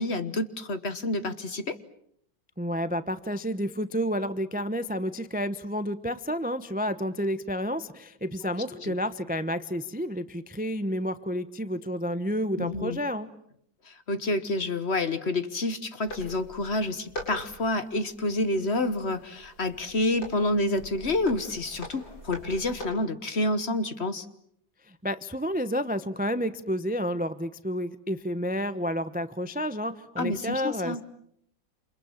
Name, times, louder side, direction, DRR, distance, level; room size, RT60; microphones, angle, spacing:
voice 1, 0.0-1.8 8.4-8.5 8.8-8.9 12.6-13.0 13.8-24.3 30.2-31.0, left 2 dB, 40° left, 12 dB, 1.3 m, -28 dB
voice 2, 2.6-13.3 24.8-31.0, equal, 10° right, 12 dB, 0.5 m, -30 dB
sound 1, 16.1-22.8, left 1 dB, 80° left, 7.9 m, -43 dB
28.5 x 28.0 x 7.4 m, 0.71 s
omnidirectional pair, 2.0 m